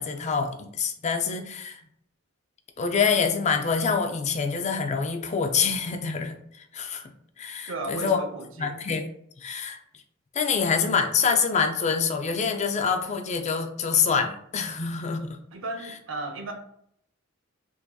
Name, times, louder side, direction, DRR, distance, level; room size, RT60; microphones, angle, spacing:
voice 1, 0.0-1.8 2.8-6.4 6.7-7.0 7.4-8.2 8.6-9.1 9.4-9.8 10.3-15.4, left 5 dB, 35° left, 5 dB, 0.4 m, -26 dB
voice 2, 7.7-8.8 15.5-16.5, right 2 dB, 70° right, 4 dB, 0.6 m, -35 dB
4.6 x 2.7 x 2.3 m, 0.70 s
head